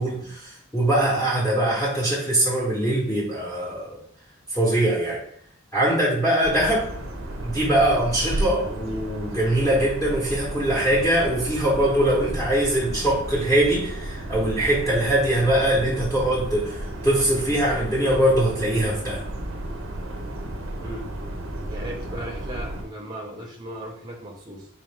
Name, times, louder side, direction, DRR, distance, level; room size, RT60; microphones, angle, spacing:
voice 1, 0.0-4.0 4.5-5.2 5.7-6.9 7.4-19.2, right 1 dB, 10° left, -7 dB, 0.9 m, -22 dB
sound 1, 6.4-22.8, right 1 dB, 65° right, 0.6 m, -33 dB
voice 2, 20.8-21.1 21.7-24.7, right 1 dB, 20° right, 0 dB, 0.7 m, -36 dB
3.9 x 2.4 x 3.3 m, 0.65 s
head